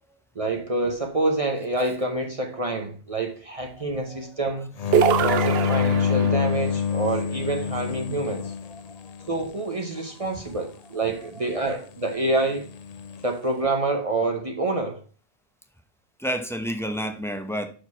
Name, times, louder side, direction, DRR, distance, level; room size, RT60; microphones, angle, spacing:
voice 1, 0.3-4.7 5.2-8.5 9.3-12.7 13.2-15.0, right 2 dB, 35° right, 0.9 m, -27 dB
voice 2, 3.9-4.3 5.0-5.2 6.4-6.6 8.7-9.2 16.2-17.7, equal, 5° left, 0.8 m, -31 dB
sound 1, 4.8-9.4 12.7-13.2, left 7 dB, 45° left, 0.5 m, -26 dB
sound 2, 4.9-6.5, right 8 dB, 65° right, 0.8 m, -23 dB
6.3 x 4.8 x 5.7 m
omnidirectional pair, 1.1 m